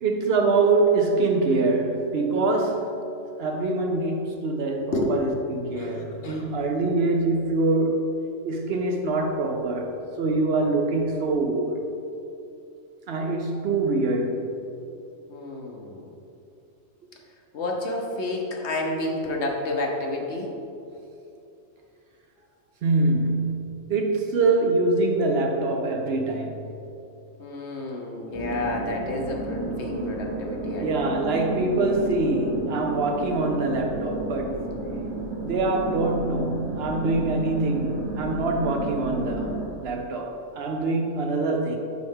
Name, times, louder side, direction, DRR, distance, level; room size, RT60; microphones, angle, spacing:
voice 1, 0.0-3.0 3.4-8.1 8.4-11.9 13.1-14.5 22.8-26.7 30.8-34.7 35.4-39.6 39.8-41.8, right 3 dB, 60° right, 0.7 m, -24 dB
voice 2, 5.8-6.5 15.3-16.1 17.5-20.5 27.4-31.3, left 2 dB, 60° left, 1.0 m, -30 dB
sound 1, 28.3-39.7, right 2 dB, 25° right, 0.7 m, -32 dB
6.2 x 5.7 x 3.5 m
omnidirectional pair, 1.4 m